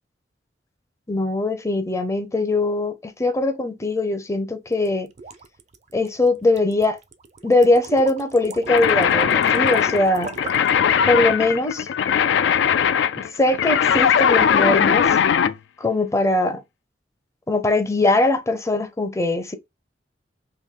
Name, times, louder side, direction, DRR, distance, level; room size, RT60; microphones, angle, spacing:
voice 1, 1.1-5.1 5.9-7.0 7.4-10.3 11.1-11.9 13.2-15.2 15.8-16.6 17.5-19.6, left 2 dB, 15° left, 0.5 m, -21 dB
sound 1, 4.7-10.8, right 3 dB, 40° right, 0.4 m, -37 dB
sound 2, 8.7-15.6, left 8 dB, 80° left, 0.3 m, -19 dB
3.0 x 2.6 x 3.5 m
head